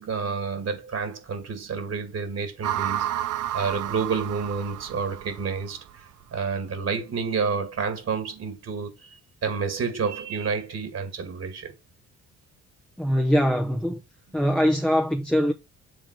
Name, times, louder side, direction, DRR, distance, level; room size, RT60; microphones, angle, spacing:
voice 1, 0.0-3.1 3.5-6.1 6.3-11.7, right 5 dB, 55° right, 2.3 m, -29 dB
sound 1, 2.6-5.9, right 12 dB, 80° right, 0.6 m, -31 dB
voice 2, 13.0-14.0 14.3-15.5, equal, 5° left, 0.8 m, -22 dB
7.4 x 3.6 x 5.2 m
cardioid pair, 90°, 30 cm